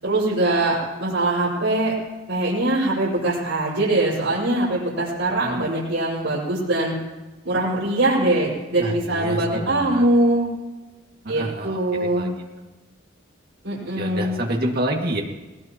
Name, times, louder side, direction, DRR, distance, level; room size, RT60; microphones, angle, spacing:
voice 1, 0.0-1.9 2.3-6.9 7.4-10.5 11.3-12.3 13.6-14.4, right 1 dB, 80° right, -8 dB, 5.4 m, -22 dB
voice 2, 8.8-10.1 11.2-12.3 14.0-15.2, right 1 dB, 50° right, 0 dB, 2.2 m, -28 dB
20.5 x 19.5 x 3.0 m, 1.1 s
head